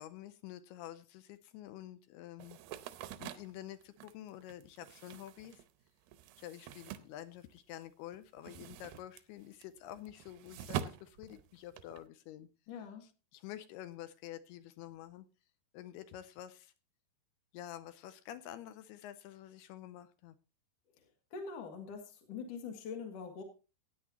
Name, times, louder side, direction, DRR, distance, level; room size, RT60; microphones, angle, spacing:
voice 1, 0.0-2.6 3.2-5.6 6.4-12.5 13.0-15.3 15.7-16.7 17.5-20.4, left 12 dB, 80° left, 2.5 m, -49 dB
sound 1, 2.4-7.8 8.1-12.0, right 10 dB, 80° right, 2.4 m, -45 dB
voice 2, 12.7-13.1 21.0-21.1 21.3-23.4, left 5 dB, 55° left, 2.7 m, -44 dB
16.5 x 9.3 x 2.9 m
omnidirectional pair, 4.9 m